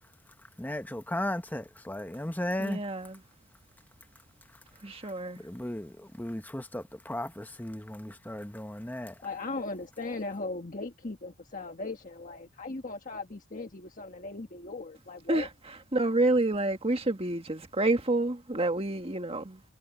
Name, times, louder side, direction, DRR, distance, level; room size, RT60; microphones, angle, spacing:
voice 1, 0.6-2.8 5.4-9.1, left 1 dB, 10° left, 0.9 m, -35 dB
voice 2, 2.6-3.2 4.8-5.4 15.3-15.5 15.9-19.6, right 2 dB, 25° right, 1.8 m, -28 dB
voice 3, 9.2-15.5, left 3 dB, 40° left, 1.3 m, -38 dB
head